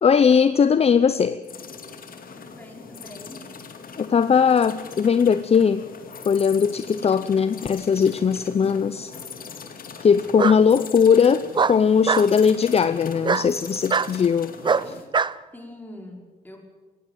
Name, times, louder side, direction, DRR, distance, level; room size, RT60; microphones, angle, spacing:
voice 1, 0.0-1.4 4.0-5.8 6.2-9.1 10.0-14.6 14.9-15.0, left 6 dB, 40° left, 13 dB, 0.7 m, -19 dB
sound 1, 1.4-15.1, left 5 dB, 60° left, 2.6 m, -41 dB
voice 2, 2.3-3.5 15.5-16.6, left 1 dB, 10° left, 1 dB, 5.3 m, -43 dB
Bark, 8.2-8.8 10.4-10.6 11.5-12.3 13.2-13.5 13.9-14.1 14.6-15.3, right 5 dB, 30° right, 0.6 m, -22 dB
18.5 x 16.5 x 9.2 m, 1.4 s
cardioid pair, 115°, 16 cm